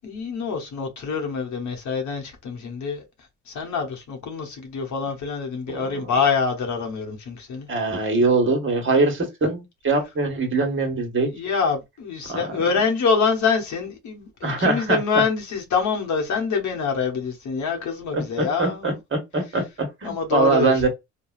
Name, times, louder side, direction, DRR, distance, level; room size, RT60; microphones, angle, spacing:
voice 1, 0.0-3.0 3.5-7.7 11.3-19.0 20.0-20.7, left 5 dB, 60° left, 1.0 m, -25 dB
voice 2, 5.7-6.1 7.7-11.3 12.3-12.7 14.4-15.0 18.1-20.9, right 3 dB, 35° right, 1.2 m, -23 dB
3.1 x 2.2 x 2.4 m
cardioid pair, 85°, 34 cm